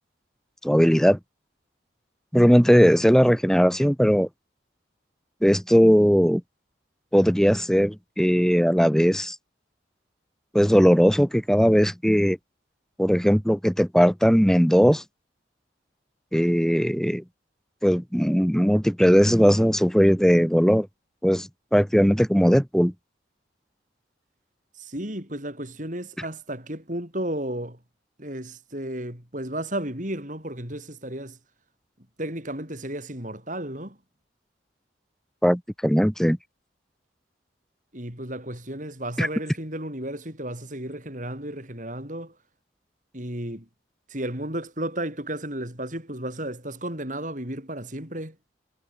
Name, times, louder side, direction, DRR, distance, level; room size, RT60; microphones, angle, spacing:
voice 1, 0.6-1.2 2.3-4.3 5.4-6.4 7.1-9.4 10.5-12.4 13.0-15.0 16.3-17.2 17.8-20.9 21.2-22.9 35.4-36.4 39.2-39.3, equal, 5° left, 2.1 m, -19 dB
voice 2, 24.8-27.8 28.2-31.4 32.2-34.0 37.9-42.3 43.1-43.7 44.1-48.4, right 1 dB, 40° right, 6.9 m, -33 dB
head